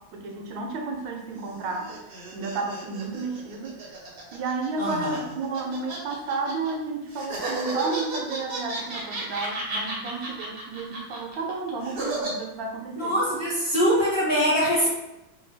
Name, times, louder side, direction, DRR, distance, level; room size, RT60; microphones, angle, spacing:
voice 1, 0.1-2.0 2.3-3.8 4.3-13.1, right 3 dB, 75° right, 1 dB, 1.3 m, -32 dB
sound 1, 1.3-6.7 7.1-12.3, right 2 dB, 45° right, 0.7 m, -34 dB
voice 2, 4.8-5.2 13.0-14.9, equal, 45° left, -9 dB, 0.8 m, -23 dB
3.8 x 2.3 x 3.3 m, 0.95 s
omnidirectional pair, 2.0 m